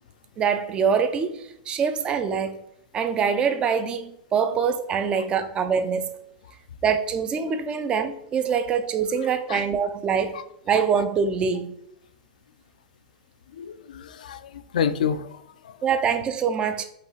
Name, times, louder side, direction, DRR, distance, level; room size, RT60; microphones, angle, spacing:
voice 1, 0.4-2.6 2.9-6.1 6.8-10.4 10.7-11.8 15.8-16.8, right 6 dB, 25° right, 0.4 m, -24 dB
voice 2, 9.2-9.6 10.3-10.4 13.5-15.8 16.6-16.7, left 8 dB, 80° left, 0.4 m, -30 dB
5.7 x 2.4 x 3.1 m
hypercardioid pair, 135°, 4 cm